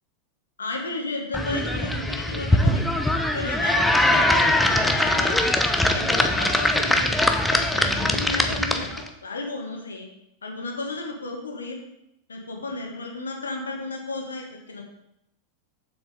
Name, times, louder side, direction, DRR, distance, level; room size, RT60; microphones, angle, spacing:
voice 1, 0.6-2.8 3.3-5.4 5.8-7.1 7.5-8.9 9.2-10.1 10.4-11.8 12.3-14.8, left 3 dB, 75° left, 2 dB, 1.5 m, -33 dB
sound 1, 1.3-9.1, left 1 dB, 5° left, 0.7 m, -22 dB
7.3 x 7.0 x 3.7 m, 0.81 s
figure-of-eight pair, 90°, 0 cm